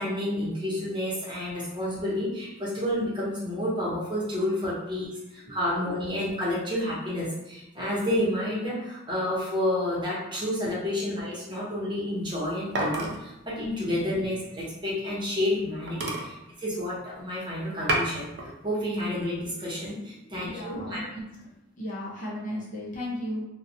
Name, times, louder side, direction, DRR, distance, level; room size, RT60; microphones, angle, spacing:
voice 1, 0.0-18.3 18.6-21.0, left 1 dB, 25° right, -8 dB, 0.8 m, -30 dB
sound 1, 12.1-15.2 15.6-15.7 15.9-17.3 17.6-18.5 18.9-19.5, right 1 dB, 55° right, 0.5 m, -32 dB
voice 2, 20.2-21.3 21.8-23.4, left 1 dB, 40° left, -5 dB, 0.6 m, -35 dB
2.8 x 2.1 x 2.6 m, 0.90 s
head